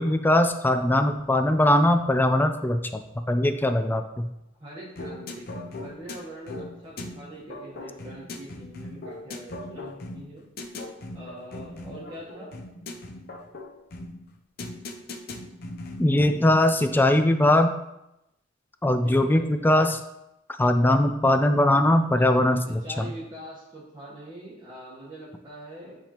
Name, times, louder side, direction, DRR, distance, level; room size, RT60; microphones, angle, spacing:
voice 1, 0.0-3.0 3.3-4.3 16.0-17.7 18.8-20.0 20.6-23.1, left 1 dB, 10° left, 7 dB, 0.3 m, -21 dB
voice 2, 4.6-10.4 11.1-12.5 19.0-19.5 22.0-26.0, right 1 dB, 25° right, -8 dB, 1.1 m, -43 dB
sound 1, 5.0-16.8, left 2 dB, 55° left, 0.6 m, -39 dB
9.7 x 3.5 x 2.9 m, 0.89 s
head